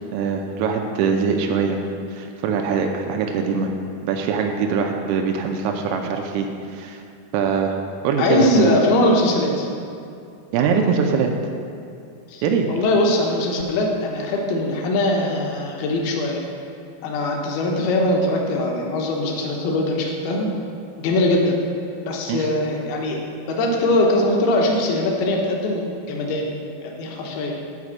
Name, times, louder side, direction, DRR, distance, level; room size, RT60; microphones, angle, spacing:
voice 1, 0.0-3.7 4.0-7.0 7.3-7.8 8.0-8.8 10.5-11.3 12.4-12.7 22.3-22.5, right 5 dB, 90° right, 3 dB, 3.4 m, -22 dB
voice 2, 8.2-9.7 12.3-16.4 17.0-20.5 21.0-21.6 22.1-23.2 23.5-26.5 26.8-27.5, left 1 dB, 80° left, -1 dB, 2.3 m, -21 dB
8.0 x 5.9 x 7.2 m, 2.5 s
omnidirectional pair, 5.8 m